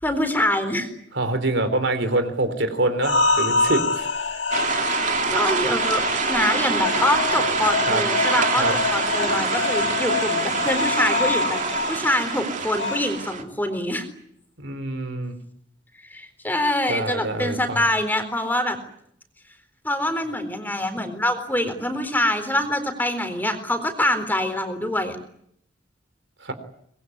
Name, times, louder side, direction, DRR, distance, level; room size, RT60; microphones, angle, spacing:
voice 1, 0.0-0.9 5.3-6.0 6.3-11.6 11.9-14.1 16.1-18.8 19.8-25.2, left 1 dB, 10° left, 8 dB, 4.0 m, -25 dB
voice 2, 1.1-4.4 7.9-8.0 8.6-8.7 14.6-15.4 16.9-17.8 26.4-26.5, right 2 dB, 65° right, 9 dB, 3.8 m, -25 dB
sound 1, 3.0-13.0, left 4 dB, 70° left, 2.4 m, -26 dB
sound 2, 4.5-13.4, right 5 dB, 40° right, 2.6 m, -25 dB
24.5 x 21.0 x 9.7 m, 0.70 s
head